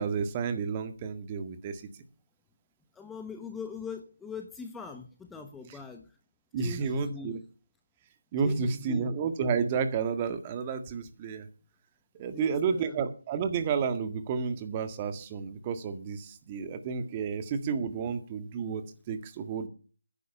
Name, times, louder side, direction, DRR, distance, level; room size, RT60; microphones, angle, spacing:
voice 1, 0.0-1.8 6.5-7.4 8.3-11.5 12.1-19.7, right 6 dB, 25° right, 9 dB, 1.8 m, -31 dB
voice 2, 2.9-6.1 6.6-7.4 8.4-9.1 12.3-13.0, left 5 dB, 5° left, 5 dB, 1.1 m, -41 dB
13.0 x 10.5 x 6.7 m, 0.38 s
figure-of-eight pair, 150°, 0 cm